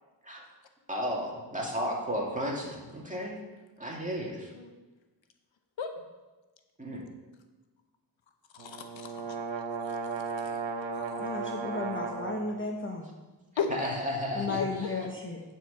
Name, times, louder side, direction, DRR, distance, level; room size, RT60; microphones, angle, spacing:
voice 1, 0.9-3.4 3.8-4.5 6.8-7.0 13.7-14.9, equal, 15° right, -2 dB, 2.3 m, -33 dB
voice 2, 8.5-9.4 9.8-10.6 10.9-11.2 13.6-14.1 14.5-15.1, left 6 dB, 75° left, 6 dB, 0.9 m, -37 dB
sound 1, 8.6-12.5, right 4 dB, 80° right, 0.9 m, -35 dB
voice 3, 11.2-13.1 14.4-15.4, left 3 dB, 25° left, 1 dB, 0.9 m, -34 dB
9.9 x 4.7 x 5.6 m, 1.2 s
cardioid pair, 60°, 45 cm